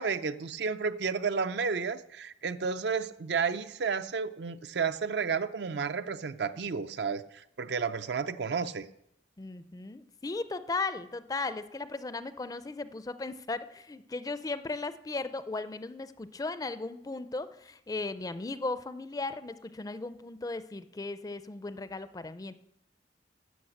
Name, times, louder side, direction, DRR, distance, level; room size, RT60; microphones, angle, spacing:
voice 1, 0.0-8.9, right 5 dB, 65° right, 12 dB, 0.5 m, -32 dB
voice 2, 9.4-22.5, left 3 dB, 20° left, 13 dB, 0.4 m, -36 dB
12.0 x 5.8 x 7.8 m, 0.78 s
head